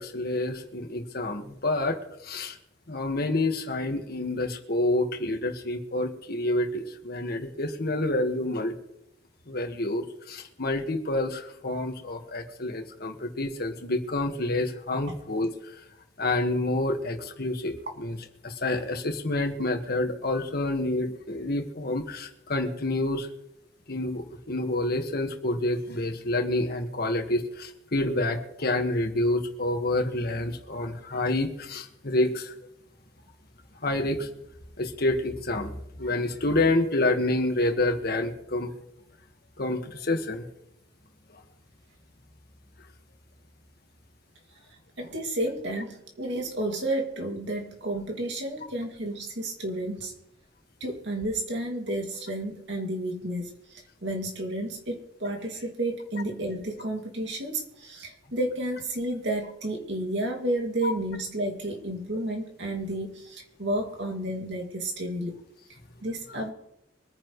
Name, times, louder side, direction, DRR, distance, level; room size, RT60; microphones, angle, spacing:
voice 1, 0.0-2.6 2.9-8.7 9.5-15.8 16.2-18.2 18.4-23.3 23.9-32.5 33.8-34.3 34.8-38.7 39.6-40.4 41.3-41.4 60.8-60.9 66.3-66.4, left 2 dB, 60° left, 5 dB, 1.7 m, -28 dB
voice 2, 45.0-50.1 50.8-65.4 66.0-66.5, right 1 dB, 75° right, 1 dB, 2.4 m, -31 dB
24.0 x 9.9 x 3.2 m, 0.84 s
head